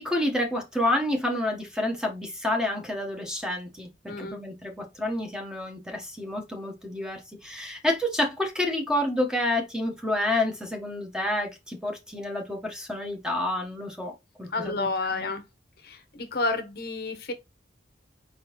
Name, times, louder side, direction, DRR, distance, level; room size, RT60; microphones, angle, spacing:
voice 1, 0.0-14.1 14.4-15.3, left 1 dB, 5° right, 0.9 m, -29 dB
voice 2, 4.1-4.4 14.5-15.4 15.8-17.3, left 3 dB, 55° left, 0.8 m, -30 dB
4.7 x 3.6 x 2.9 m
head